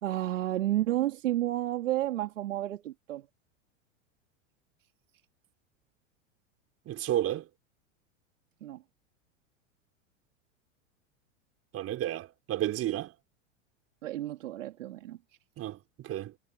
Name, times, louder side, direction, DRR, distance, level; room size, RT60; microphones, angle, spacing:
voice 1, 0.0-3.3 8.6-8.8 14.0-15.2, right 14 dB, 75° right, 3.1 m, -31 dB
voice 2, 6.8-7.4 11.7-13.1 15.6-16.3, right 13 dB, 35° right, 5.1 m, -32 dB
hypercardioid pair, 105°, 39 cm